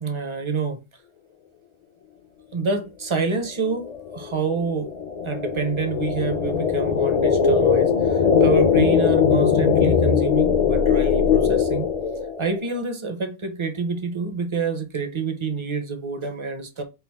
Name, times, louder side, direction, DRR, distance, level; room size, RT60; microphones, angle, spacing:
voice 1, 0.0-0.8 2.5-4.9 5.2-11.9 12.4-16.8, right 4 dB, 35° right, 0.6 m, -27 dB
sound 1, 3.7-12.6, left 7 dB, 50° left, 0.5 m, -20 dB
4.6 x 2.4 x 3.4 m
omnidirectional pair, 1.0 m